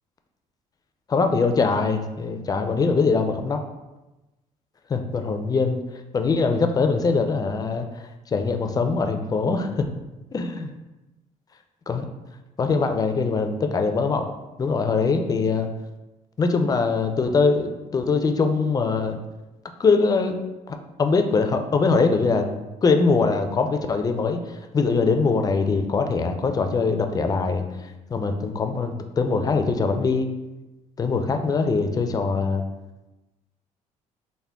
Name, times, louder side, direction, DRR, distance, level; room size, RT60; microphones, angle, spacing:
voice 1, 1.1-3.6 4.9-5.8 6.1-7.9 8.3-9.9 10.3-10.7 11.9-12.1 12.6-14.3 14.6-15.7 16.4-19.2 19.8-20.4 20.7-22.5 22.8-27.6 28.1-30.3 31.0-32.6, left 4 dB, 25° left, 6 dB, 0.3 m, -22 dB
3.6 x 2.1 x 3.4 m, 1.0 s
cardioid pair, 95°, 14 cm